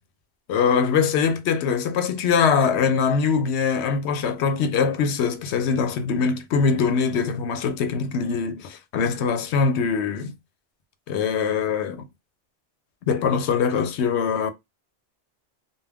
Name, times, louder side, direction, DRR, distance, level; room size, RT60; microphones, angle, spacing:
voice 1, 0.5-10.3 11.1-12.0 13.1-14.5, left 6 dB, 85° left, 0.8 m, -22 dB
2.3 x 2.2 x 3.3 m
omnidirectional pair, 1.1 m